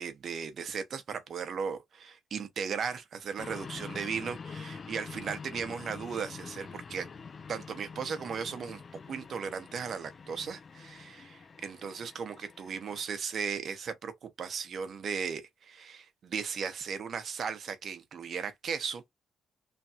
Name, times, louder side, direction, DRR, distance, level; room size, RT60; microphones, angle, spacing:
voice 1, 0.0-7.1 7.5-8.8 9.1-19.1, right 6 dB, 55° right, 0.9 m, -36 dB
sound 1, 3.4-13.0, left 5 dB, 40° left, 0.4 m, -46 dB
3.3 x 2.3 x 2.7 m
cardioid pair, 90°, 0 cm